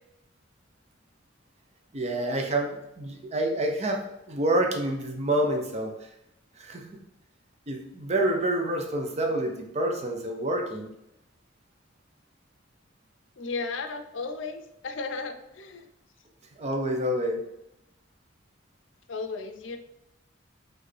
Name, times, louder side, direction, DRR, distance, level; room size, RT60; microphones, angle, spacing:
voice 1, 1.9-5.9 6.6-6.9 7.7-10.9 16.6-17.4, right 1 dB, 35° right, 3 dB, 0.6 m, -28 dB
voice 2, 13.4-15.8 19.1-19.8, left 4 dB, 80° left, 6 dB, 0.5 m, -34 dB
4.4 x 3.2 x 3.2 m, 0.85 s
head